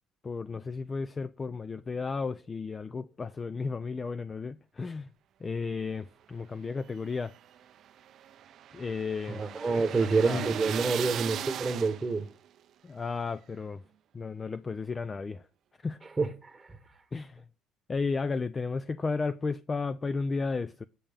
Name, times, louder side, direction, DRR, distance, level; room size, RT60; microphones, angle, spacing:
voice 1, 0.2-5.1 5.4-7.3 8.7-9.4 10.0-10.5 12.8-13.8 14.1-15.4 15.8-16.0 17.1-17.4 17.9-20.8, left 4 dB, 25° left, 0.3 m, -33 dB
sound 1, 6.8-12.3, right 10 dB, 55° right, 0.5 m, -38 dB
voice 2, 9.3-12.3 16.2-16.7, right 3 dB, 15° right, 1.0 m, -28 dB
9.0 x 7.4 x 3.5 m
cardioid pair, 115°, 0 cm